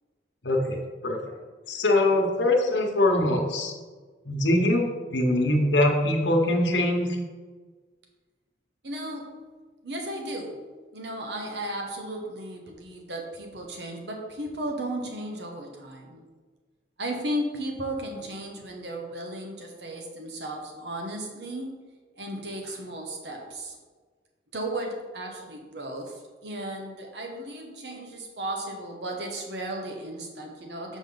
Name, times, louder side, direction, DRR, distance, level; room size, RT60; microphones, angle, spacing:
voice 1, 0.4-1.2 1.7-3.7 4.3-7.1, left 1 dB, 85° left, 2 dB, 1.1 m, -23 dB
voice 2, 8.8-9.3 9.8-10.6 10.9-16.2 17.0-21.7 22.2-23.8 24.5-31.0, right 1 dB, 70° right, 1 dB, 1.0 m, -35 dB
7.1 x 5.2 x 3.9 m, 1.4 s
head